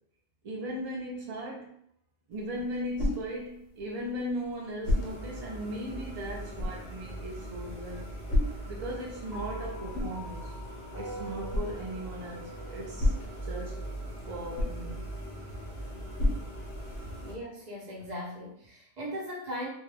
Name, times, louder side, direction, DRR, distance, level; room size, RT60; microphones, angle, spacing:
voice 1, 0.4-1.8 2.3-8.1 8.7-10.5 11.0-13.1 13.5-13.8 14.3-15.0, equal, 75° right, -2 dB, 0.3 m, -37 dB
sound 1, 2.3-17.2, left 1 dB, 75° left, 1.0 m, -35 dB
sound 2, 4.8-17.4, right 1 dB, 50° left, 0.8 m, -41 dB
sound 3, 9.3-13.7, right 1 dB, 15° left, 0.9 m, -45 dB
voice 2, 17.2-19.7, equal, 40° right, -4 dB, 0.7 m, -38 dB
2.3 x 2.1 x 3.1 m, 0.70 s
omnidirectional pair, 1.3 m